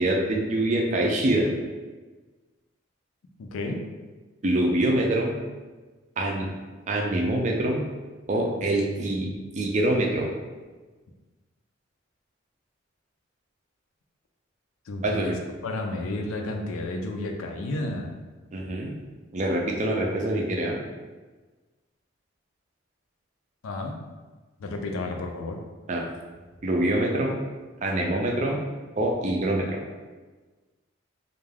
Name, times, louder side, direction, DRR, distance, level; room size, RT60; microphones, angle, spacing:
voice 1, 0.0-1.5 4.4-5.3 6.2-6.5 6.9-7.8 8.3-10.3 15.0-15.4 18.5-18.9 19.3-20.8 25.9-26.0 26.6-27.4 27.8-28.6 29.0-29.8, right 1 dB, 35° right, 0 dB, 0.3 m, -25 dB
voice 2, 3.4-3.8 14.9-15.3 15.6-18.2 23.6-24.0 24.6-25.6, left 2 dB, 80° left, 3 dB, 0.4 m, -31 dB
2.3 x 2.2 x 3.2 m, 1.3 s
head